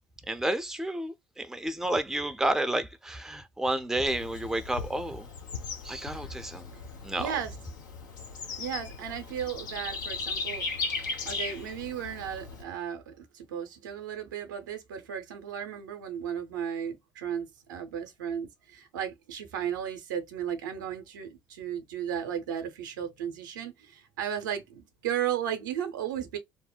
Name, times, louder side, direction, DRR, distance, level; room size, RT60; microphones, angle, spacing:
voice 1, 0.3-5.3 5.8-6.7 7.0-7.3, right 1 dB, 5° right, 0.4 m, -31 dB
Bird / Insect, 4.1-12.6, left 4 dB, 85° left, 0.7 m, -37 dB
voice 2, 7.2-7.5 8.6-26.4, right 9 dB, 80° right, 0.6 m, -35 dB
2.7 x 2.0 x 2.2 m
hypercardioid pair, 60°, 10 cm